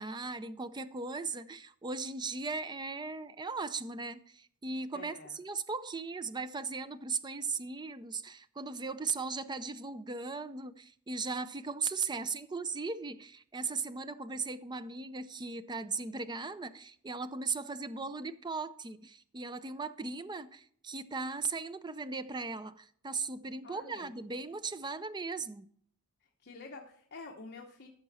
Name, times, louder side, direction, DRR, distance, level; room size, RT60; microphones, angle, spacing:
voice 1, 0.0-25.7, right 4 dB, 20° right, 0.5 m, -38 dB
voice 2, 4.9-5.4 23.6-24.1 26.4-27.9, left 3 dB, 50° left, 1.0 m, -48 dB
14.0 x 6.0 x 4.1 m
head